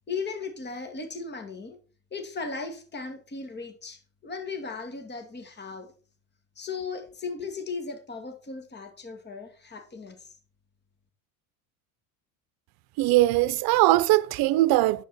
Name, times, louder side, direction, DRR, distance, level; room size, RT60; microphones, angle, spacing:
voice 1, 0.1-1.8 2.1-5.9 6.6-10.4, left 4 dB, 25° left, 2.3 m, -37 dB
voice 2, 13.0-15.0, right 17 dB, 60° right, 0.9 m, -21 dB
11.0 x 7.5 x 4.3 m
supercardioid pair, 90°, 42 cm